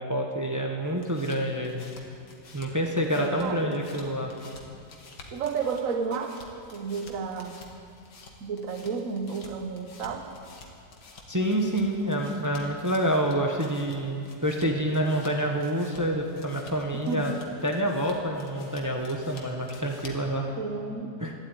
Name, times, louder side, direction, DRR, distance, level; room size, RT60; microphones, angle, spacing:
voice 1, 0.0-1.8 2.5-4.3 11.3-17.3 17.6-20.5 21.2-21.3, equal, 15° right, 1 dB, 1.0 m, -27 dB
sound 1, 0.8-20.4, left 3 dB, 85° left, 2.3 m, -50 dB
voice 2, 3.2-3.8 5.3-6.4 6.7-7.6 8.4-10.3 17.0-17.3 20.6-21.2, right 5 dB, 55° right, 6 dB, 1.4 m, -32 dB
12.5 x 12.5 x 9.1 m, 2.6 s
omnidirectional pair, 1.8 m